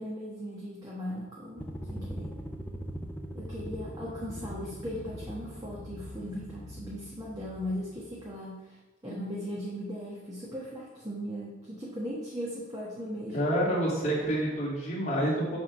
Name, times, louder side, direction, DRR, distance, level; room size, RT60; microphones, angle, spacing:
voice 1, 0.0-2.3 3.3-8.8 9.0-13.4, equal, 20° right, -6 dB, 1.2 m, -38 dB
sound 1, 1.6-8.3, equal, 10° left, 0.5 m, -41 dB
voice 2, 13.3-15.6, right 1 dB, 35° left, -6 dB, 2.6 m, -28 dB
7.6 x 3.6 x 6.2 m, 1.1 s
head